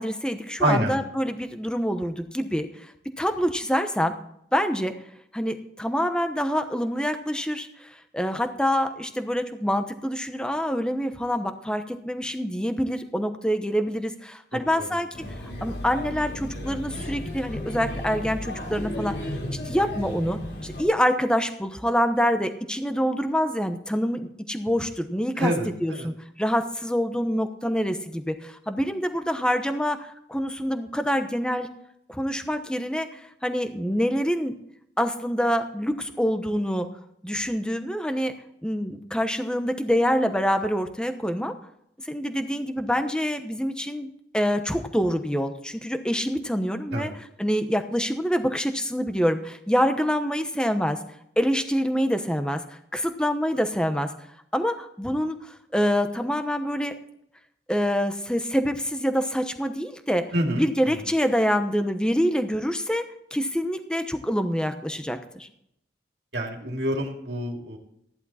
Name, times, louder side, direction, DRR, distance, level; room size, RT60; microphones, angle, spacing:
voice 1, 0.0-2.9 3.2-4.2 4.5-4.9 5.3-15.1 15.6-19.1 19.6-26.1 26.4-31.7 32.1-34.5 35.0-36.9 37.2-38.3 38.6-41.5 42.0-51.0 51.4-54.1 54.5-56.9 57.7-60.2 60.5-63.0 63.3-65.5, equal, 5° left, 8 dB, 0.9 m, -26 dB
voice 2, 0.6-0.9 14.8-14.9 25.4-26.1 46.9-47.1 60.3-60.7 66.3-67.8, right 1 dB, 75° right, 2 dB, 2.2 m, -26 dB
Male speech man speaking / Child speech kid speaking / Chatter, 15.1-20.8, left 1 dB, 80° left, 3.8 m, -34 dB
14.5 x 11.0 x 4.2 m, 0.74 s
head